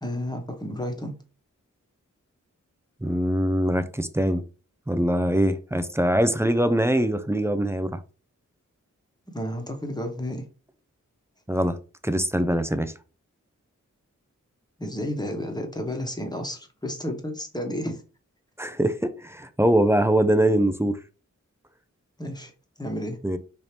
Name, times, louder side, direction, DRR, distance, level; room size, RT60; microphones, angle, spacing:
voice 1, 0.0-1.1 9.3-10.5 14.8-18.0 22.2-22.5 22.8-23.2, left 1 dB, 15° left, 1.2 m, -31 dB
voice 2, 3.0-4.5 4.9-8.0 11.5-11.8 12.0-12.9 18.6-21.0 23.2-23.4, right 1 dB, 10° right, 0.5 m, -23 dB
4.3 x 2.8 x 3.3 m
cardioid pair, 45°, 31 cm